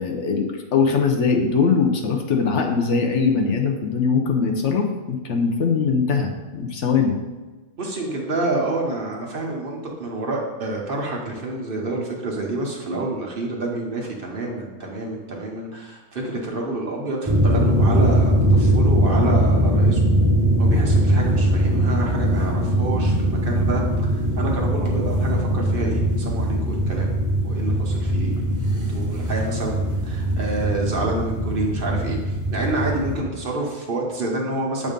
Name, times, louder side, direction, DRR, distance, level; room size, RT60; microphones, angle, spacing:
voice 1, 0.0-7.2, left 5 dB, 65° left, 3 dB, 1.0 m, -21 dB
voice 2, 7.8-20.1 20.6-27.1 27.4-28.4 28.7-34.9, right 2 dB, 50° right, -1 dB, 1.0 m, -28 dB
sound 1, 17.3-33.2, right 1 dB, 20° right, 0.6 m, -21 dB
7.4 x 2.6 x 5.1 m, 1.2 s
omnidirectional pair, 1.4 m